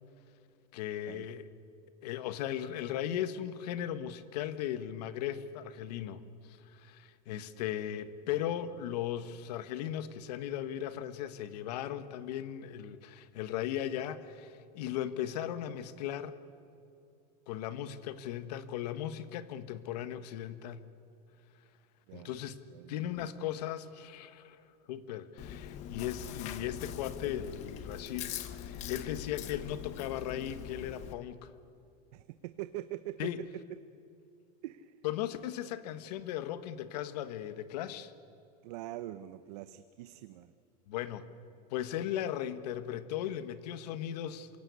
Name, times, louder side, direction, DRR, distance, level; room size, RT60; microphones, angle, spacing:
voice 1, 0.7-1.5 2.0-6.2 6.5-16.4 17.5-20.8 22.1-22.6 22.9-24.6 24.9-31.5 33.2-33.4 35.0-38.1 40.9-41.3 41.7-44.5, left 11 dB, 75° left, 12 dB, 1.5 m, -37 dB
Chewing mastication, 25.4-31.1, left 10 dB, 35° left, 1.0 m, -42 dB
voice 2, 32.1-33.3 34.6-34.9 38.6-40.5, right 14 dB, 70° right, 11 dB, 0.9 m, -43 dB
27.5 x 17.0 x 9.6 m, 2.5 s
supercardioid pair, 175°, 21 cm